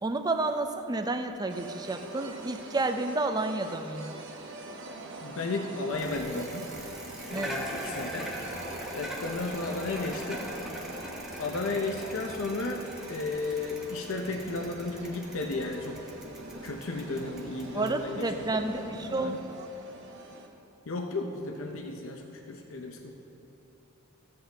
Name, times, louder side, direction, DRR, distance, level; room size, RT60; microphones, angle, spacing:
voice 1, 0.0-4.2 7.3-7.5 17.7-19.6, right 2 dB, 20° right, 7 dB, 0.4 m, -30 dB
sound 1, 1.5-20.5, right 2 dB, 60° right, 0.9 m, -44 dB
voice 2, 5.2-6.7 7.3-8.3 8.9-10.5 11.4-16.0 16.6-19.4 20.9-23.1, left 3 dB, 65° left, 2 dB, 0.7 m, -34 dB
Bicycle, 5.9-19.1, equal, ahead, 0.9 m, -42 dB
15.0 x 7.8 x 3.4 m, 3.0 s
head